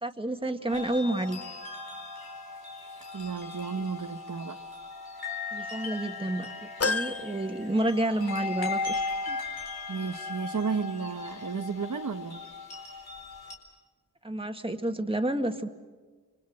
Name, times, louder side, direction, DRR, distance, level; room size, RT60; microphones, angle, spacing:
voice 1, 0.0-1.4 5.5-9.4 14.2-15.7, right 1 dB, 15° right, 5 dB, 2.0 m, -30 dB
sound 1, 0.7-13.5, left 3 dB, 85° left, 4.3 m, -38 dB
voice 2, 3.1-4.6 9.9-12.4, right 5 dB, 60° right, 5 dB, 1.2 m, -33 dB
sound 2, 6.8-8.4 8.9-9.0 10.2-10.3, left 3 dB, 40° left, 0.8 m, -33 dB
29.5 x 22.5 x 6.3 m, 1.4 s
cardioid pair, 45°, 36 cm